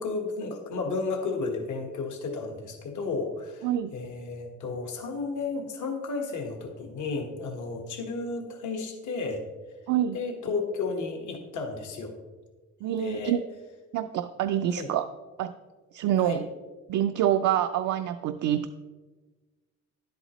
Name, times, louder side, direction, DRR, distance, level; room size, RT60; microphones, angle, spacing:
voice 1, 0.0-3.7 3.9-9.4 10.1-12.1 12.9-13.4 14.8-14.9 16.2-16.4, left 4 dB, 75° left, 3 dB, 1.4 m, -33 dB
voice 2, 9.9-10.2 12.8-13.4 13.9-15.0 15.4-15.5 15.9-16.5 16.9-18.7, right 11 dB, 80° right, 8 dB, 0.5 m, -26 dB
10.5 x 8.1 x 3.0 m, 1.3 s
cardioid pair, 90°, 30 cm